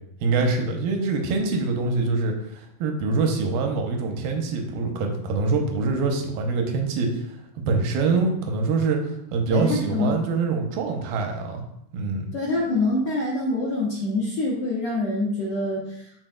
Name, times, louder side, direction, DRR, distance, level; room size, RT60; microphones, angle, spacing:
voice 1, 0.2-7.3 7.7-9.0 9.3-11.6 11.9-12.3, right 4 dB, 90° right, 3 dB, 2.6 m, -24 dB
voice 2, 9.5-10.2 12.3-16.0, left 2 dB, 70° left, -5 dB, 1.4 m, -25 dB
12.5 x 4.2 x 2.3 m, 0.76 s
omnidirectional pair, 4.0 m